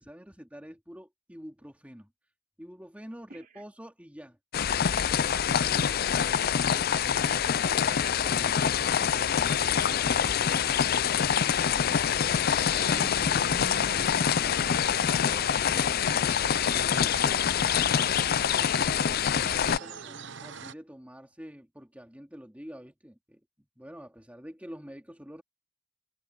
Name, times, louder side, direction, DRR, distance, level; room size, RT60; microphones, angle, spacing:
voice 1, 0.0-2.1 2.6-4.4 6.8-6.9 19.0-25.4, equal, 5° right, 2.5 m, -47 dB
voice 2, 3.3-3.6 5.5-6.2 6.7-10.2 10.4-11.8 12.5-14.1 14.7-16.0 16.6-18.8 19.7-20.2, right 2 dB, 45° right, 3.3 m, -50 dB
sound 1, 4.5-19.8, left 8 dB, 45° left, 0.4 m, -25 dB
sound 2, 9.1-20.7, right 4 dB, 60° right, 0.9 m, -44 dB
head